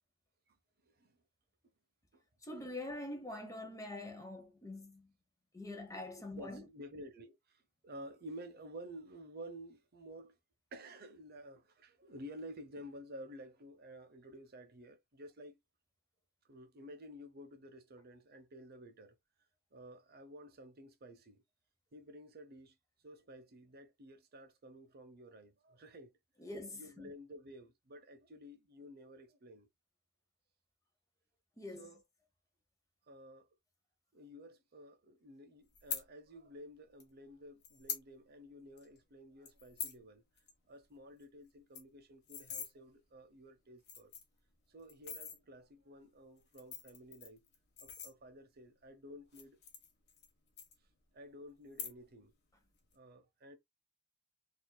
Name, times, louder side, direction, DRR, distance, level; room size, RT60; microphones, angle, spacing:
voice 1, 0.8-1.2 2.1-2.2 6.2-10.4 10.7-15.6 16.5-19.1 19.7-21.4 21.9-22.8 23.0-26.1 26.7-29.7 31.8-32.0 33.1-33.5 34.1-40.2 40.7-44.1 44.7-47.4 47.8-49.6 51.1-52.3 52.9-53.6, equal, 50° right, 0.8 m, -52 dB
voice 2, 2.4-5.1 5.5-6.6 26.4-27.1 31.6-31.9, left 2 dB, 15° left, 1.0 m, -45 dB
sound 1, 35.7-36.0 37.0-37.1 37.6-38.1 38.4-38.5 38.8-39.0 39.4-40.0 40.4-40.5 40.8-40.9 41.2-41.3 41.5-42.7 43.4-43.5 43.8-44.4 44.9-45.4 46.4-48.5 49.2-50.3 50.6-51.2 51.6-52.2 52.5-52.9, left 7 dB, 55° left, 1.2 m, -44 dB
4.3 x 2.7 x 2.3 m
head